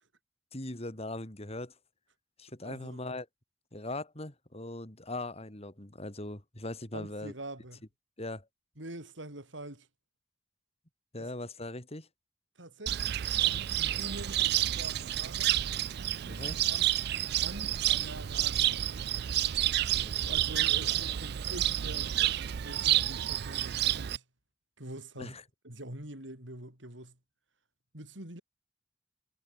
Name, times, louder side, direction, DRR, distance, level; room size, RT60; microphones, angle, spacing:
voice 1, 0.5-1.7 2.4-3.3 3.7-7.3 8.2-8.5 11.1-12.1 16.2-16.6 19.9-20.4 25.2-25.4, left 2 dB, 35° left, 3.8 m, -40 dB
voice 2, 2.6-3.2 6.9-7.8 8.8-9.9 11.2-11.3 12.6-15.6 16.3-16.4 16.7-16.9 17.4-18.9 20.3-24.2 24.8-25.3 25.6-27.2 27.9-28.4, right 1 dB, 85° right, 6.9 m, -45 dB
Cricket, 12.9-24.2, right 12 dB, 60° right, 0.4 m, -29 dB
head